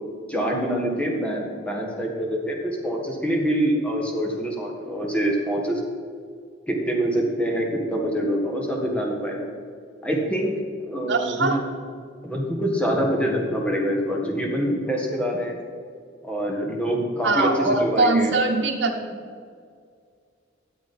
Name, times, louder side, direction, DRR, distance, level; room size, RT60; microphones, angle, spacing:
voice 1, 0.3-5.8 6.7-9.5 10.0-11.6 12.2-15.5 16.2-18.3, equal, 5° left, -1 dB, 1.5 m, -25 dB
voice 2, 11.1-11.6 17.2-18.9, right 3 dB, 75° right, 0 dB, 1.2 m, -21 dB
13.0 x 7.6 x 4.3 m, 2.1 s
head